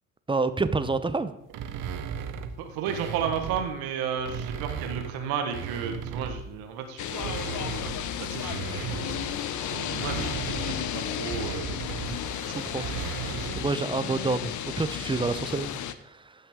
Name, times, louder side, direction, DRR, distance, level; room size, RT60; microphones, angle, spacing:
voice 1, 0.3-1.3 12.4-12.9 13.3-16.3, right 3 dB, 15° right, 12 dB, 0.7 m, -28 dB
sound 1, 1.5-3.7 4.1-6.5 7.0-13.8, right 8 dB, 55° right, 0.9 m, -36 dB
voice 2, 2.6-7.4 8.2-10.3 10.8-11.7 12.4-12.6 13.2-13.6, right 7 dB, 70° right, 6 dB, 1.4 m, -33 dB
sound 2, 7.0-15.9, left 10 dB, 50° left, 0.8 m, -33 dB
15.0 x 5.7 x 3.6 m, 0.80 s
hypercardioid pair, 60°, 38 cm